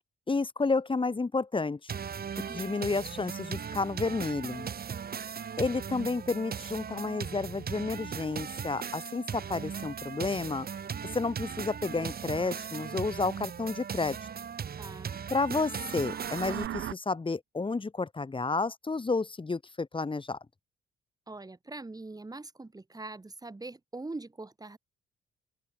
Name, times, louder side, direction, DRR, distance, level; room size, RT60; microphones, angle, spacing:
voice 1, 0.3-1.9 2.5-4.7 5.6-10.7 11.1-14.2 15.3-20.4, left 3 dB, 25° left, 5.3 m, -31 dB
sound 1, 1.9-16.7, right 7 dB, 50° right, 6.2 m, -38 dB
voice 2, 2.3-2.8 14.8-15.2 21.3-24.8, right 2 dB, 20° right, 7.5 m, -43 dB
sound 2, 15.5-16.9, right 12 dB, 75° right, 8.0 m, -39 dB
open air
cardioid pair, 90°, 20 cm